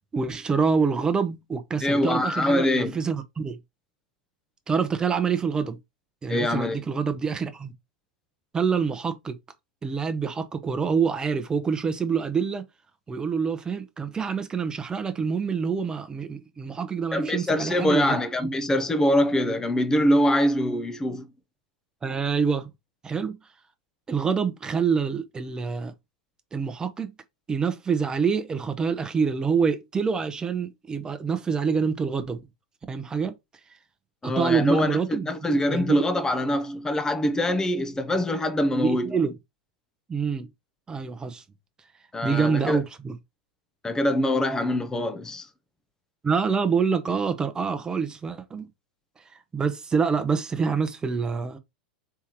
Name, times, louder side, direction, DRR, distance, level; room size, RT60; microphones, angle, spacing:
voice 1, 0.1-3.6 4.7-5.8 6.2-7.7 8.5-9.4 9.8-12.6 13.1-18.5 22.0-22.7 23.0-23.4 24.1-25.9 26.5-27.1 27.5-32.4 32.9-33.4 34.2-36.0 38.8-39.4 40.1-40.5 40.9-41.4 42.2-43.2 46.2-48.7 49.3-51.6, right 5 dB, 15° right, 0.9 m, -26 dB
voice 2, 1.8-3.0 6.3-6.8 17.1-21.3 34.2-39.1 42.1-42.8 43.8-45.5, left 1 dB, 15° left, 0.7 m, -24 dB
4.6 x 3.5 x 3.0 m
hypercardioid pair, 95°, 4 cm